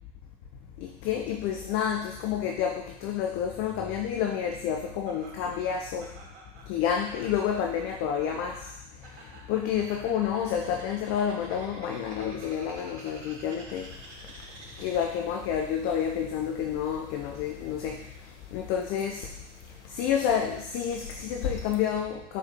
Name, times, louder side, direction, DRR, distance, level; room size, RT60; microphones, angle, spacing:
voice 1, 0.8-6.2 6.7-13.9 14.8-18.2 18.5-19.3 19.9-22.4, left 8 dB, 40° left, 3 dB, 0.4 m, -29 dB
Laughter, 5.1-15.3, right 2 dB, 70° right, 1.1 m, -49 dB
sound 1, 13.8-21.9, left 6 dB, 70° left, 0.7 m, -44 dB
5.2 x 4.3 x 2.2 m, 0.80 s
figure-of-eight pair, 65°, 36 cm